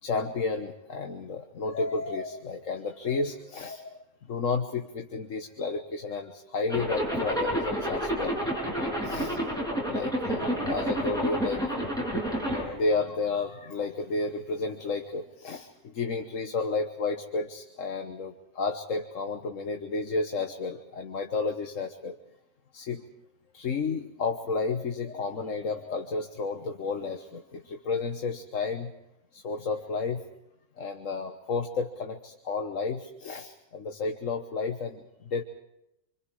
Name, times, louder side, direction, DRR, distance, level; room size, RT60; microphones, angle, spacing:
voice 1, 0.0-8.4 9.0-9.4 9.9-11.6 12.5-22.2 22.7-23.1 23.5-28.9 29.3-30.2 30.8-35.4, left 4 dB, 75° left, 5 dB, 1.6 m, -32 dB
Zipper (clothing), 6.7-12.6, equal, 5° left, 7.3 m, -29 dB
27.0 x 26.0 x 4.8 m, 0.84 s
omnidirectional pair, 1.3 m